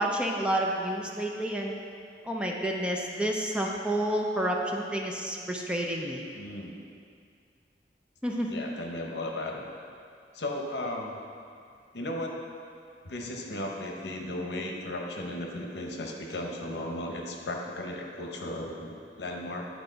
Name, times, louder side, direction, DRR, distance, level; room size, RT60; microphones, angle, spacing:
voice 1, 0.0-1.7 2.2-6.2 8.2-8.5, right 1 dB, 5° right, -1 dB, 0.5 m, -29 dB
voice 2, 6.3-6.7 8.5-9.6 10.3-11.2 11.9-12.4 13.0-19.7, left 1 dB, 70° left, 1 dB, 0.9 m, -35 dB
9.7 x 4.7 x 3.9 m, 2.3 s
head